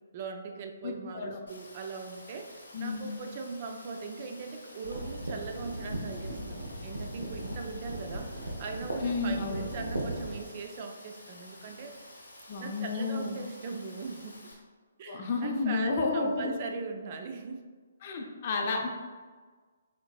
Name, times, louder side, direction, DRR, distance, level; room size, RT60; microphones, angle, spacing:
voice 1, 0.1-12.0 12.6-14.5 15.0-17.7, right 4 dB, 40° right, 4 dB, 0.4 m, -40 dB
voice 2, 0.8-1.4 2.7-3.2 9.0-9.7 12.5-13.4 15.1-16.6 18.0-18.9, left 3 dB, 40° left, 1 dB, 0.6 m, -31 dB
Rain, 1.5-14.5, left 1 dB, 75° left, 1.2 m, -51 dB
sound 1, 4.8-10.4, right 1 dB, 85° right, 0.8 m, -37 dB
4.3 x 3.9 x 2.3 m, 1.5 s
figure-of-eight pair, 135°, 0 cm